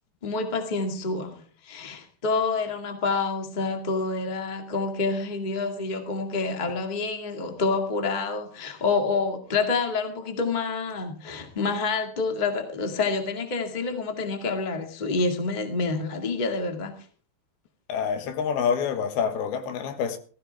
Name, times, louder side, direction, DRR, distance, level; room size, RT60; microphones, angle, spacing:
voice 1, 0.2-16.9, left 4 dB, 20° left, 1.2 m, -28 dB
voice 2, 17.9-20.2, left 7 dB, 85° left, 3.3 m, -27 dB
17.0 x 14.5 x 3.5 m
omnidirectional pair, 4.3 m